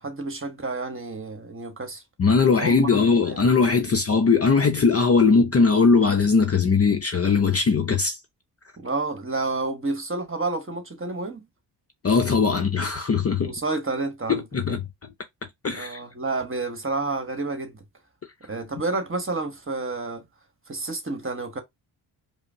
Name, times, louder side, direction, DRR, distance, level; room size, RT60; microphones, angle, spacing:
voice 1, 0.0-2.0 2.6-2.9 3.2-3.4 8.8-11.5 13.5-14.4 15.7-17.8 18.5-20.2 20.7-21.6, right 3 dB, 25° right, 1.1 m, -29 dB
voice 2, 2.2-8.2 12.0-13.5 14.3-14.9 15.6-16.0, left 5 dB, 30° left, 0.6 m, -20 dB
4.9 x 2.0 x 2.6 m
supercardioid pair, 50°, 49 cm